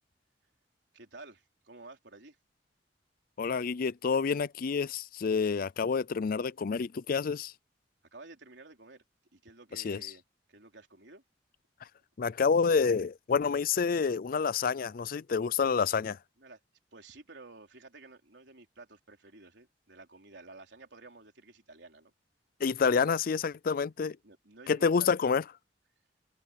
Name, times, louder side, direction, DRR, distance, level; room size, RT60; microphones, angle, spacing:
voice 1, 0.9-2.4 8.1-9.0 9.3-10.2 10.5-11.2 16.4-16.6 16.9-22.1 24.2-25.1, right 3 dB, 75° right, 3.9 m, -52 dB
voice 2, 3.4-7.5 9.7-10.0 12.2-16.2 22.6-24.2 24.7-25.4, left 5 dB, 55° left, 0.4 m, -28 dB
head